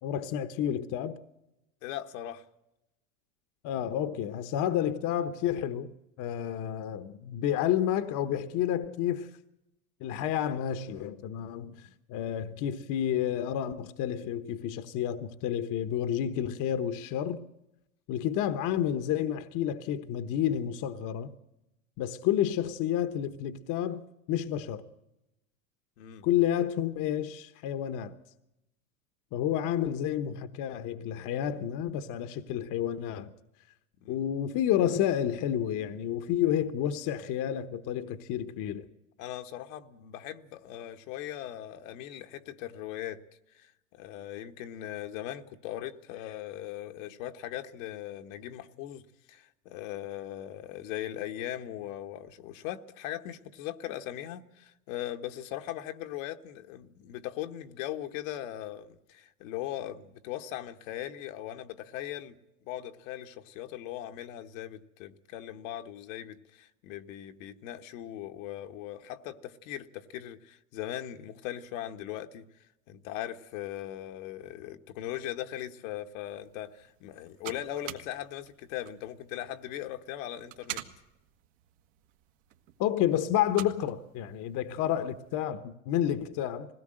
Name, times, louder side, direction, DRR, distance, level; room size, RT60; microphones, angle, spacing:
voice 1, 0.0-1.2 3.6-5.9 6.2-9.3 10.0-11.8 12.1-17.4 18.1-21.3 22.0-24.0 24.3-24.8 26.2-28.1 29.3-33.3 34.1-38.8 82.8-86.7, left 10 dB, 50° left, 1.1 m, -30 dB
voice 2, 1.8-2.5 26.0-26.3 34.0-34.2 39.2-43.2 43.5-49.0 49.3-62.3 62.6-72.5 72.9-80.8, left 12 dB, 70° left, 1.4 m, -39 dB
sound 1, 76.2-85.4, right 13 dB, 65° right, 1.8 m, -47 dB
20.5 x 17.0 x 7.7 m
supercardioid pair, 110°, 41 cm